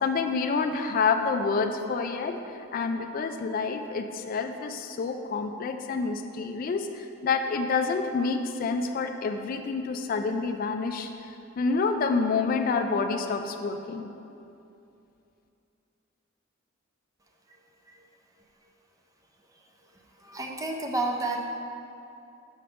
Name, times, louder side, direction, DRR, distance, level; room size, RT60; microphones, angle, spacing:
voice 1, 0.0-14.1, left 4 dB, 45° left, 6 dB, 0.3 m, -28 dB
voice 2, 20.2-21.5, right 2 dB, 15° right, 1 dB, 0.5 m, -31 dB
6.3 x 5.7 x 3.6 m, 2.7 s
head